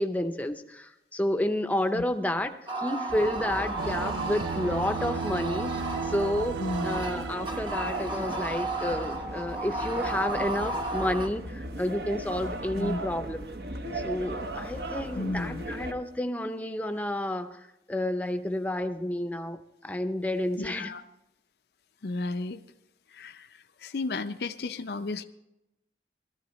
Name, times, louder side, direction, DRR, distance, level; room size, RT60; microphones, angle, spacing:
voice 1, 0.0-6.6 6.8-13.5 13.9-17.6 17.9-20.9, left 1 dB, 10° left, 8 dB, 0.6 m, -30 dB
sound 1, 2.7-11.3, right 2 dB, 25° right, 0.9 m, -34 dB
sound 2, 3.1-15.9, right 2 dB, 65° right, 1.1 m, -37 dB
sound 3, 3.8-9.2, right 6 dB, 80° right, 0.3 m, -35 dB
voice 2, 6.6-7.0 12.8-13.0 15.2-15.6 20.6-21.0 22.0-22.6 23.1-23.5 23.8-25.2, left 2 dB, 65° left, 9 dB, 0.5 m, -33 dB
17.5 x 13.5 x 3.1 m, 0.89 s
head